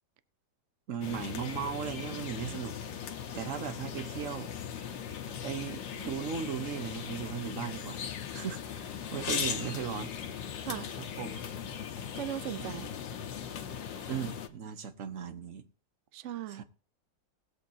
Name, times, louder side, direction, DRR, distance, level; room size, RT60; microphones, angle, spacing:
voice 1, 0.9-3.0 3.3-4.5 5.4-8.0 8.3-10.1 11.0-11.4 12.6-12.9 14.1-15.7 16.5-16.6, right 8 dB, 50° right, 1.2 m, -37 dB
sound 1, 1.0-14.5, left 8 dB, 75° left, 1.7 m, -39 dB
voice 2, 12.1-12.9 16.1-16.6, right 11 dB, 70° right, 0.6 m, -38 dB
19.5 x 8.2 x 2.8 m
omnidirectional pair, 2.0 m